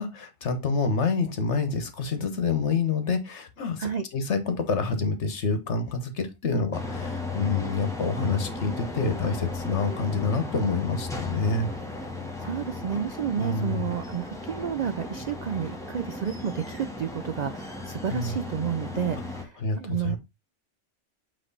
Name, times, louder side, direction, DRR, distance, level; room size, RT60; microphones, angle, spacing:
voice 1, 0.0-11.7 13.4-13.9 18.1-18.4 19.6-20.2, left 4 dB, 65° left, 1.5 m, -27 dB
sound 1, 6.7-19.4, left 2 dB, 5° left, 1.3 m, -35 dB
voice 2, 12.4-20.2, right 8 dB, 60° right, 0.4 m, -31 dB
7.9 x 3.2 x 4.1 m
omnidirectional pair, 1.3 m